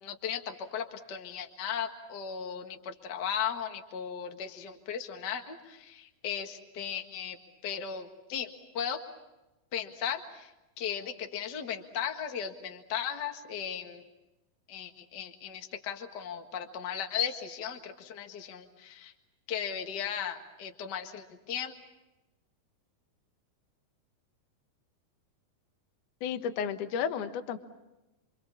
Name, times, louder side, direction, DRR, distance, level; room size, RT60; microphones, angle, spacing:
voice 1, 0.0-7.4 7.6-8.5 8.7-9.0 9.7-10.5 10.8-14.0 14.7-19.1 19.5-21.7, left 8 dB, 45° left, 5 dB, 1.5 m, -36 dB
voice 2, 26.2-27.6, left 7 dB, 65° left, 8 dB, 2.5 m, -32 dB
27.5 x 26.0 x 7.2 m, 1.0 s
omnidirectional pair, 4.5 m